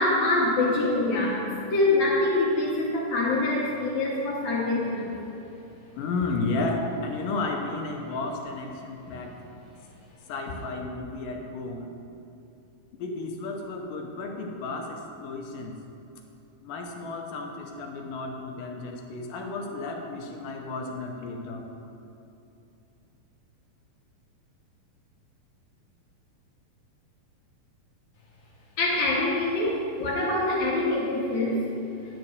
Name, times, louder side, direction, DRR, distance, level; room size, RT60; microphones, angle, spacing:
voice 1, 0.0-1.4 1.7-5.2 28.8-31.6, left 2 dB, 60° left, -5 dB, 2.5 m, -25 dB
voice 2, 6.0-9.3 10.3-11.9 12.9-15.8 16.6-21.7, left 3 dB, 75° left, 2 dB, 2.3 m, -33 dB
10.5 x 4.5 x 8.0 m, 2.8 s
omnidirectional pair, 4.2 m